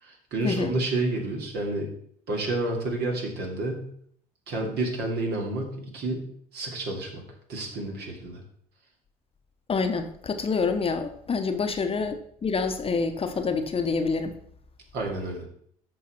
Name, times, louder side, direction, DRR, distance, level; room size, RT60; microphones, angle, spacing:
voice 1, 0.0-1.9 2.3-3.9 4.5-7.2 7.5-8.4 14.9-15.5, right 2 dB, 55° right, 1 dB, 2.6 m, -30 dB
voice 2, 9.7-14.4, left 4 dB, 30° left, 7 dB, 1.0 m, -27 dB
13.5 x 4.8 x 4.4 m, 0.65 s
hypercardioid pair, 65°, 20 cm